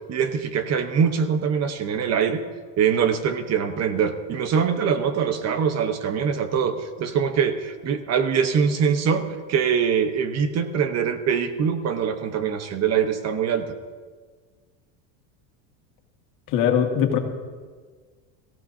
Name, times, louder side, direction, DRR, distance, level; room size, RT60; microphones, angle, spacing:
voice 1, 0.1-2.4 2.8-13.7, right 7 dB, 40° right, 8 dB, 1.1 m, -23 dB
voice 2, 16.5-17.2, left 8 dB, 55° left, 3 dB, 2.1 m, -20 dB
21.5 x 15.0 x 2.8 m, 1.5 s
supercardioid pair, 120°, 40 cm